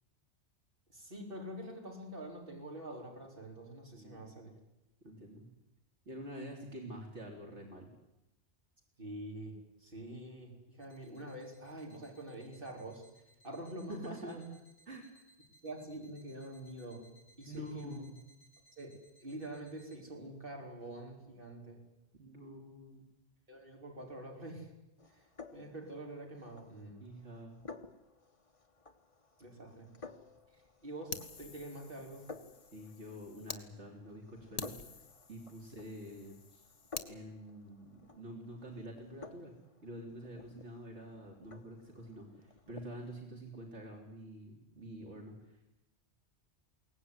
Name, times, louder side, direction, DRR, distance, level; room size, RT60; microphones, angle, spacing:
voice 1, 0.9-4.5 9.0-10.5 10.8-13.0 13.4-14.4 15.6-17.0 17.4-18.0 18.8-18.9 19.2-21.8 23.5-24.7 25.1-25.2 25.5-27.0 29.4-29.9 30.8-32.2 35.6-35.7, right 1 dB, 50° right, 0 dB, 4.7 m, -46 dB
voice 2, 5.0-5.4 6.1-7.9 13.9-14.4 14.9-15.1 17.5-18.2 22.1-23.1 27.0-27.6 32.7-35.0 35.3-36.6 37.0-39.5 39.8-45.6, equal, 75° right, 1 dB, 3.7 m, -47 dB
sound 1, 10.8-20.0, right 1 dB, 50° left, 6.2 m, -65 dB
sound 2, 25.0-43.2, left 4 dB, 30° left, 1.2 m, -55 dB
Fire, 31.1-33.6 34.1-34.2 34.6-37.1, left 5 dB, 70° left, 1.8 m, -47 dB
22.0 x 18.0 x 9.7 m, 0.92 s
omnidirectional pair, 1.2 m